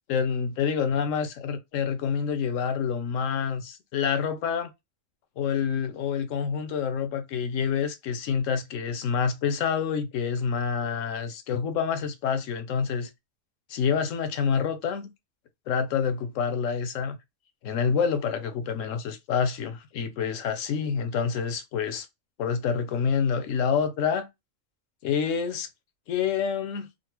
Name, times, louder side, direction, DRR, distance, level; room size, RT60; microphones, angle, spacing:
voice 1, 0.1-4.7 5.4-13.1 13.7-15.1 15.7-17.2 17.6-22.1 22.4-24.3 25.0-25.7 26.1-26.9, left 6 dB, 75° left, 1.0 m, -27 dB
3.9 x 2.1 x 2.9 m
omnidirectional pair, 1.4 m